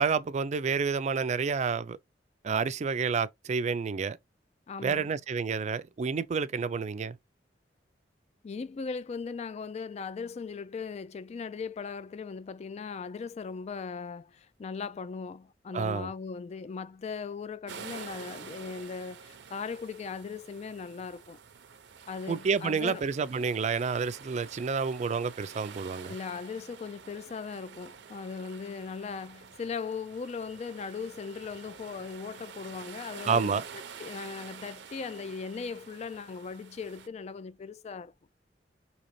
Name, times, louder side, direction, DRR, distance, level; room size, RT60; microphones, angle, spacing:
voice 1, 0.0-2.0 2.4-4.2 4.8-7.2 15.7-16.1 22.3-26.1 33.2-33.6, right 5 dB, 40° right, 0.3 m, -29 dB
voice 2, 4.7-5.1 8.4-21.4 22.1-23.0 26.1-38.1, left 5 dB, 40° left, 0.3 m, -38 dB
sound 1, 17.7-37.1, right 6 dB, 85° right, 0.6 m, -48 dB
3.8 x 2.9 x 3.0 m
head